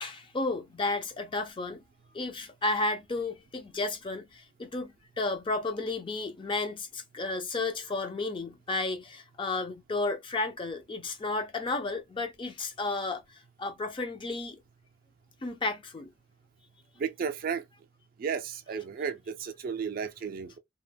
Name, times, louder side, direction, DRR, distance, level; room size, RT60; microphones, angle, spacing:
voice 1, 0.0-1.8 2.1-14.6 15.4-16.1, left 2 dB, 25° left, 0.4 m, -33 dB
voice 2, 17.0-17.6 18.2-20.6, right 6 dB, 50° right, 0.3 m, -33 dB
2.2 x 2.0 x 3.3 m
head